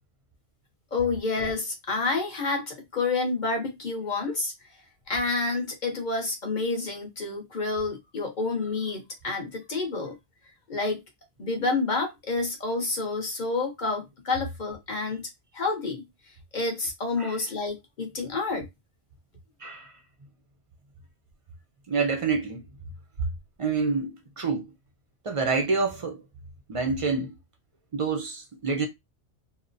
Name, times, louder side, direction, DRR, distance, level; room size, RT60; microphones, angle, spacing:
voice 1, 0.9-4.5 5.1-10.2 10.7-11.0 11.4-16.0 16.5-18.7, left 3 dB, 50° left, 0.7 m, -29 dB
voice 2, 19.6-19.9 21.9-22.6 23.6-24.6 25.2-26.2 26.7-27.3 27.9-28.9, right 4 dB, 55° right, 0.3 m, -27 dB
2.7 x 2.0 x 2.5 m
omnidirectional pair, 1.2 m